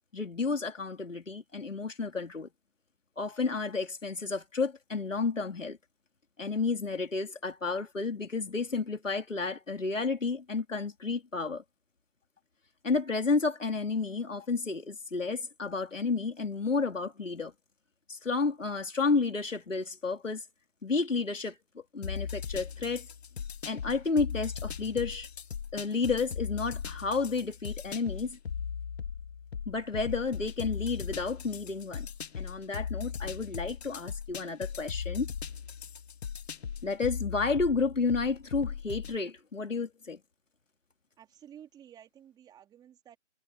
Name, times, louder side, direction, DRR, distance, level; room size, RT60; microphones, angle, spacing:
voice 1, 0.1-2.5 3.2-5.8 6.4-11.6 12.8-17.5 18.1-20.4 20.8-23.1 23.6-25.3 25.7-28.4 29.7-32.1 32.4-35.3 36.8-40.2, left 4 dB, 90° left, 4.0 m, -31 dB
sound 1, 22.0-39.2, left 7 dB, 55° left, 2.5 m, -38 dB
voice 2, 41.2-43.2, right 9 dB, 10° right, 3.2 m, -53 dB
figure-of-eight pair, 150°, 37 cm